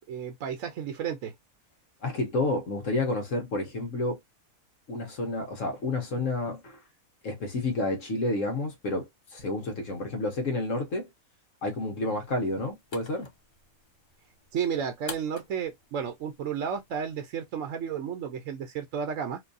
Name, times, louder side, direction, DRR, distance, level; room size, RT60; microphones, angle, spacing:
voice 1, 0.1-1.3 14.5-19.4, right 7 dB, 70° right, 1.1 m, -32 dB
voice 2, 2.0-4.2 4.9-6.8 7.2-11.1 11.6-13.3, left 2 dB, 65° left, 1.3 m, -30 dB
sound 1, 12.2-17.3, left 4 dB, 35° left, 0.4 m, -48 dB
4.4 x 2.3 x 2.6 m
omnidirectional pair, 1.5 m